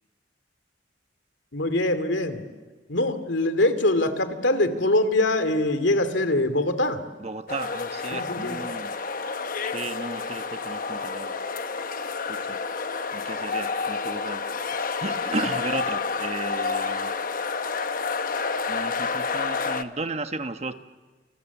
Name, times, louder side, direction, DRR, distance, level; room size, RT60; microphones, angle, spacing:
voice 1, 1.5-2.4 2.9-7.0 8.1-8.6, left 1 dB, 85° left, 10 dB, 2.5 m, -23 dB
voice 2, 7.2-9.4 9.6-11.3 12.3-12.6 13.1-17.1 18.7-20.7, right 3 dB, 35° right, 8 dB, 1.1 m, -34 dB
sound 1, 7.5-19.8, left 4 dB, 50° left, 1.0 m, -29 dB
29.0 x 28.0 x 7.2 m, 1.4 s
head